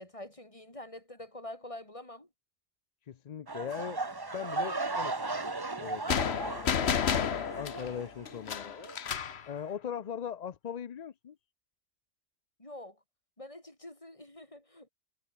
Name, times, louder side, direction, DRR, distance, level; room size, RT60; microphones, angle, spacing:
voice 1, 0.0-2.3 12.6-13.0 13.4-14.9, left 1 dB, 25° left, 4.3 m, -46 dB
voice 2, 3.1-4.0 4.3-5.5 5.8-7.0 7.5-8.9 9.5-11.4, left 8 dB, 45° left, 0.5 m, -40 dB
sound 1, 3.5-8.5 8.8-9.1 9.6-9.7, right 3 dB, 20° right, 1.1 m, -36 dB
sound 2, 6.1-9.4, left 7 dB, 65° left, 1.3 m, -31 dB
omnidirectional pair, 1.2 m